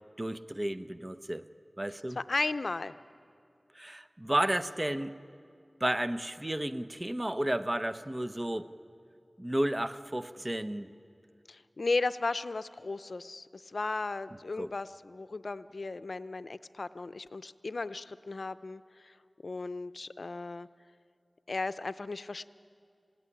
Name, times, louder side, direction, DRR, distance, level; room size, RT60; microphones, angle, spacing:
voice 1, 0.2-1.4 1.8-2.2 3.7-5.1 5.8-8.7 9.4-10.9 14.6-14.7, right 1 dB, 25° right, 11 dB, 0.9 m, -32 dB
voice 2, 2.2-2.9 11.5-19.1 19.4-20.7 21.5-22.5, left 3 dB, 75° left, 14 dB, 0.5 m, -35 dB
27.5 x 17.0 x 10.0 m, 2.4 s
wide cardioid pair, 55°, 0 cm